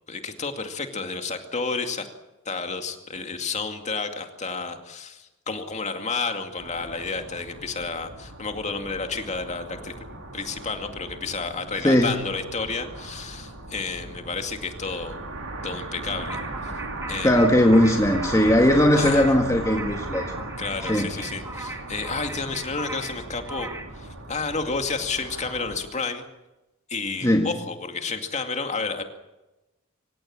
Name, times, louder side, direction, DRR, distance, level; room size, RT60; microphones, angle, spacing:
voice 1, 0.1-2.1 2.5-9.9 10.3-15.2 15.6-16.7 17.1-17.4 19.0-19.3 20.6-23.7 23.9-26.2 26.9-29.0, left 4 dB, 35° left, 5 dB, 2.3 m, -31 dB
sound 1, 6.6-25.8, right 2 dB, 75° right, 4.4 m, -37 dB
voice 2, 11.8-12.2 17.2-20.3 20.9-21.2 27.2-27.5, left 1 dB, 15° left, 2 dB, 1.7 m, -19 dB
sound 2, 16.3-24.0, right 2 dB, 15° right, 2.4 m, -38 dB
26.0 x 16.5 x 8.7 m, 1.0 s
head